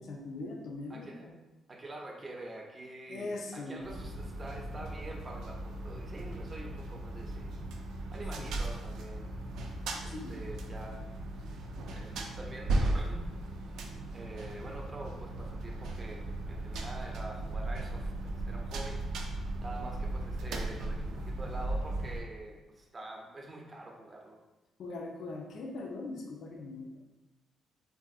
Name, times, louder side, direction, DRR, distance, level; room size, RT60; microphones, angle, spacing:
voice 1, 0.0-1.3 3.1-3.8 6.5-6.7 8.4-8.5 10.1-10.4 24.8-27.1, left 2 dB, 70° left, 0 dB, 0.5 m, -41 dB
voice 2, 0.9-1.2 1.7-7.5 8.1-9.3 10.0-11.1 11.4-11.6 11.9-13.3 14.1-19.0 19.6-24.4, right 2 dB, 30° right, 0 dB, 0.6 m, -46 dB
sound 1, 3.8-22.2, right 2 dB, 80° right, 0.4 m, -37 dB
3.6 x 2.6 x 2.4 m, 1.1 s
cardioid pair, 90°, 0 cm